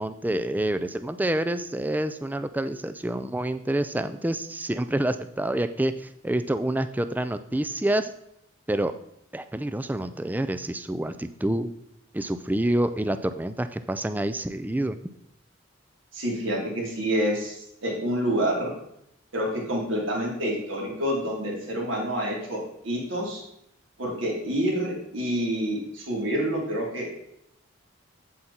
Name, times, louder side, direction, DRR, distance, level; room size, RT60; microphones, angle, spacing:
voice 1, 0.0-8.1 8.7-8.9 9.3-11.7 12.1-15.0, right 1 dB, 10° right, 11 dB, 0.4 m, -27 dB
voice 2, 16.1-18.7 19.3-23.4 24.0-27.2, equal, 75° right, -2 dB, 3.6 m, -28 dB
8.4 x 8.0 x 4.3 m, 0.77 s
head